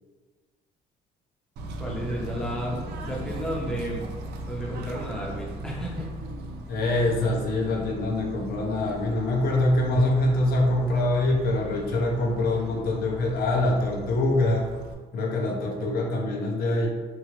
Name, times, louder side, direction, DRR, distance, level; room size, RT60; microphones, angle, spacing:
Bird / Train, 1.6-14.9, right 1 dB, 70° right, 0.5 m, -38 dB
voice 1, 1.8-4.1 4.5-6.1, equal, 5° left, -3 dB, 0.6 m, -32 dB
voice 2, 6.7-14.7 15.1-16.9, left 2 dB, 65° left, 0 dB, 0.6 m, -24 dB
2.9 x 2.4 x 3.0 m, 1.4 s
cardioid pair, 110°, 17 cm